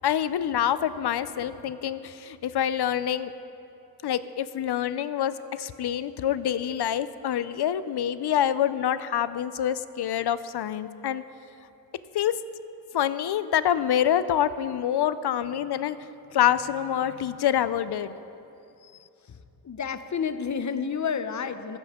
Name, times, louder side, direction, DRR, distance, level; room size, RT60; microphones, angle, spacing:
voice 1, 0.0-3.3 4.0-11.2 12.1-12.3 12.9-16.0 16.3-18.2, left 10 dB, 85° left, 14 dB, 0.5 m, -26 dB
voice 2, 19.6-21.8, left 6 dB, 50° left, 11 dB, 0.7 m, -30 dB
15.0 x 14.0 x 3.6 m, 2.8 s
wide cardioid pair, 90°, 38 cm